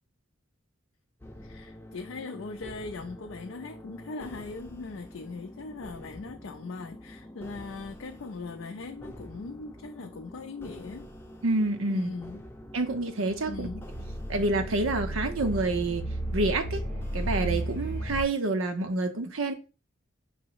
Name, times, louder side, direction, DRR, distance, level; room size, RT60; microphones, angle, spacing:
sound 1, 1.2-18.1, equal, 10° left, 0.6 m, -47 dB
voice 1, 1.4-11.1 11.9-12.4 13.5-13.9, left 3 dB, 75° left, 0.4 m, -40 dB
voice 2, 11.4-12.1 12.7-13.7 14.3-16.1 16.3-16.8 17.1-19.5, right 2 dB, 90° right, 0.8 m, -28 dB
sound 2, 13.2-18.2, right 1 dB, 50° right, 2.0 m, -33 dB
5.3 x 2.0 x 4.6 m
head